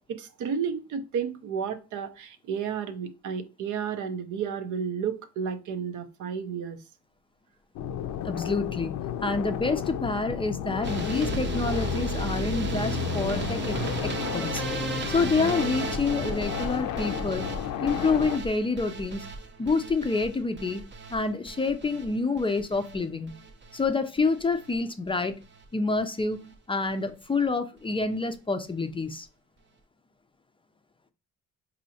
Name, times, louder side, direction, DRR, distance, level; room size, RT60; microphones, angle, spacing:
voice 1, 0.1-6.8, right 7 dB, 75° right, 0.6 m, -32 dB
sound 1, 7.8-18.4, left 10 dB, 75° left, 0.5 m, -33 dB
voice 2, 8.2-14.6 15.1-17.5 17.8-19.3 19.6-20.8 21.1-23.4 23.7-25.4 25.7-29.3, left 3 dB, 20° left, 0.4 m, -28 dB
sound 2, 10.8-23.0 23.3-23.9 24.2-24.8 25.1-25.3 25.6-25.7 26.0-26.1, right 3 dB, 40° right, 0.7 m, -34 dB
4.1 x 2.7 x 2.7 m
cardioid pair, 90°, 30 cm